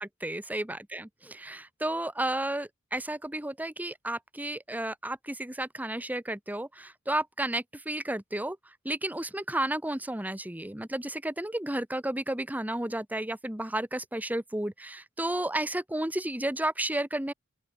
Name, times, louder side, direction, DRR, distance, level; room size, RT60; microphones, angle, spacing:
voice 1, 0.0-17.3, right 1 dB, 10° right, 1.2 m, -32 dB
open air
head